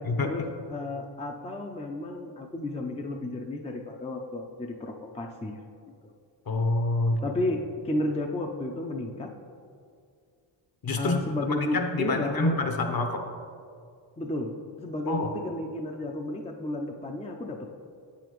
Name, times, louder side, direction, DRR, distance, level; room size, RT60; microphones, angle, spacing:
voice 1, 0.2-5.6 7.2-9.3 11.0-12.6 14.2-17.7, left 1 dB, 15° left, 2 dB, 0.5 m, -32 dB
voice 2, 6.5-7.2 10.8-11.2 11.6-13.2 15.1-15.3, left 2 dB, 45° left, 5 dB, 1.0 m, -27 dB
7.9 x 7.0 x 3.1 m, 2.3 s
cardioid pair, 65°, 49 cm